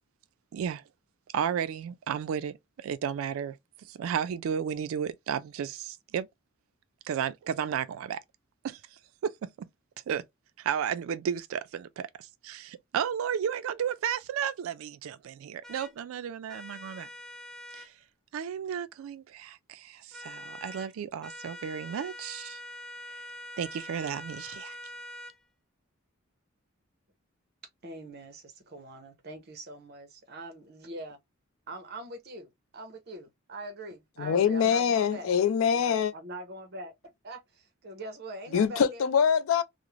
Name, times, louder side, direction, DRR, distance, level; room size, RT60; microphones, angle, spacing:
voice 1, 0.5-0.8 1.3-3.6 3.9-6.3 7.0-8.2 8.6-8.8 9.2-9.7 10.1-10.2 10.6-17.1 17.7-17.9 18.3-22.6 23.6-24.8, right 8 dB, 80° right, 0.3 m, -33 dB
sound 1, 15.6-15.9 16.5-17.9 20.1-20.9 21.2-25.4, left 1 dB, ahead, 0.3 m, -44 dB
voice 2, 27.8-31.2 31.7-35.3 35.8-36.9 37.2-39.1, right 1 dB, 50° right, 0.7 m, -43 dB
voice 3, 34.2-36.1 38.5-39.6, left 7 dB, 75° left, 0.4 m, -24 dB
2.4 x 2.0 x 3.0 m
head